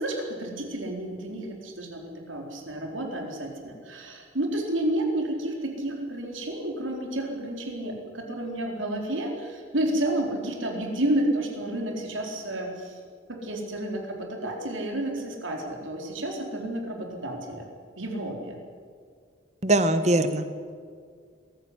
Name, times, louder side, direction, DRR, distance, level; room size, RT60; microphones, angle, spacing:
voice 1, 0.0-13.0 13.3-17.7 18.0-18.6, right 1 dB, 85° right, 1 dB, 4.2 m, -30 dB
voice 2, 19.6-20.7, right 1 dB, 35° right, 10 dB, 1.4 m, -22 dB
22.5 x 14.0 x 9.7 m, 2.1 s
head